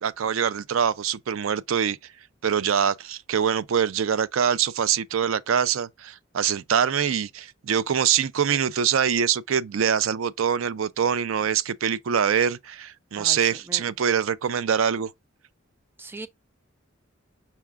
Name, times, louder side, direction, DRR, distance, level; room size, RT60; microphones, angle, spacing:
voice 1, 0.0-2.0 2.4-15.1, right 8 dB, 90° right, 0.4 m, -24 dB
voice 2, 13.1-13.4 13.7-13.8 16.0-16.3, right 2 dB, 10° right, 0.4 m, -39 dB
5.7 x 2.3 x 3.4 m
head